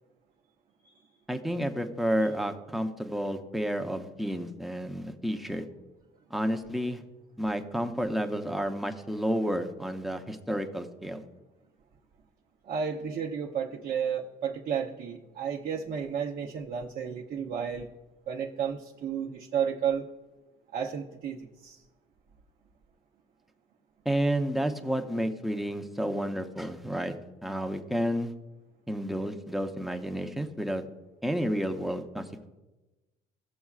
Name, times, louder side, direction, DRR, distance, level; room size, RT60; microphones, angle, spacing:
voice 1, 1.3-5.6 6.3-7.0 7.4-11.2 24.0-27.1 27.4-28.3 28.9-30.8 31.2-32.5, equal, ahead, 4 dB, 0.8 m, -31 dB
voice 2, 12.6-17.9 18.3-20.1 20.7-21.8, right 7 dB, 50° right, 0 dB, 0.8 m, -32 dB
16.5 x 7.0 x 2.4 m, 1.1 s
cardioid pair, 110°, 17 cm